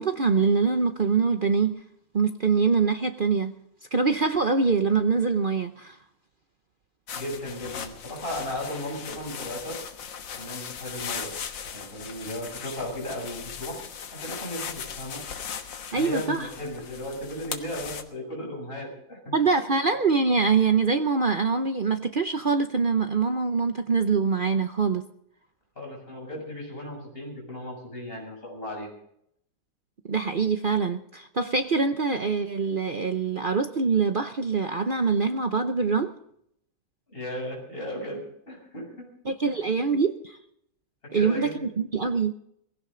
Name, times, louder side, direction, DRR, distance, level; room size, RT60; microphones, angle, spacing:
voice 1, 0.0-1.8 2.1-3.5 3.9-6.0 15.9-16.5 19.3-25.0 30.0-36.1 39.2-40.4 41.1-42.3, right 5 dB, 55° right, 0.5 m, -24 dB
sound 1, 7.1-18.0, left 7 dB, 75° left, 2.0 m, -38 dB
voice 2, 7.1-9.8 10.3-11.3 11.7-13.8 14.1-15.2 15.9-19.4 25.8-28.9 37.1-39.1 39.4-39.5 41.0-41.7, left 1 dB, 30° left, 7.7 m, -36 dB
19.5 x 16.5 x 3.9 m
omnidirectional pair, 2.0 m